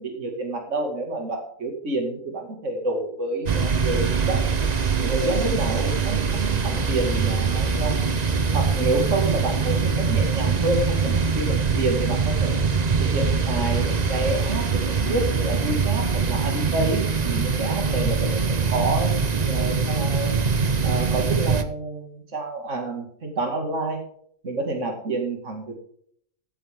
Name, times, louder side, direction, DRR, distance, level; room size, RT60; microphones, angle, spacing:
voice 1, 0.0-4.4 5.0-8.0 8.5-12.5 13.0-20.4 20.8-24.0 24.4-25.8, right 2 dB, 65° right, 3 dB, 2.5 m, -28 dB
sound 1, 3.5-21.6, right 5 dB, 35° right, 0.9 m, -23 dB
15.5 x 8.5 x 3.6 m, 0.63 s
omnidirectional pair, 1.4 m